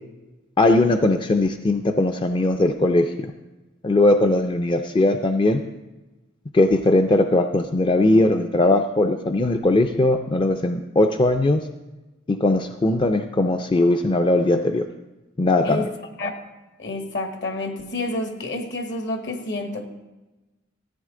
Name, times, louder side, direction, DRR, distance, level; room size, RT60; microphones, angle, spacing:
voice 1, 0.6-3.1 3.8-5.6 6.5-11.7 12.3-14.9 15.4-15.8, left 2 dB, 25° left, 6 dB, 0.4 m, -19 dB
voice 2, 16.8-19.9, left 2 dB, 60° left, 5 dB, 1.3 m, -29 dB
14.5 x 8.9 x 3.7 m, 1.1 s
head